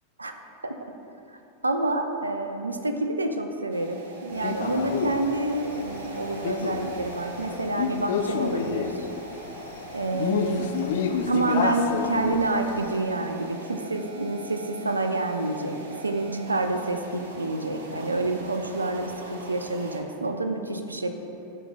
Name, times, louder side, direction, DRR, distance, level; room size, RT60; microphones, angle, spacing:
voice 1, 1.6-9.1 9.9-10.7 11.0-21.1, right 2 dB, 80° right, 6 dB, 0.4 m, -28 dB
sound 1, 3.7-20.0, right 2 dB, 65° right, 0.8 m, -42 dB
Male speech man speaking, 4.4-12.9, left 6 dB, 55° left, 0.4 m, -30 dB
9.9 x 6.4 x 2.2 m, 2.8 s
figure-of-eight pair, 90°, 0 cm